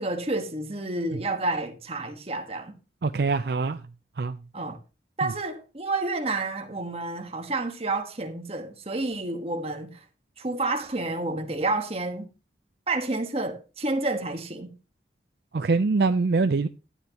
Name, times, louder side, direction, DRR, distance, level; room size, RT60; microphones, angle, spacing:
voice 1, 0.0-2.7 4.5-4.8 5.2-10.0 10.4-12.3 12.9-14.7, right 2 dB, 35° right, 1.4 m, -29 dB
voice 2, 3.0-3.8 4.2-4.4 15.5-16.7, right 4 dB, 60° right, 0.5 m, -23 dB
12.5 x 9.1 x 2.9 m
head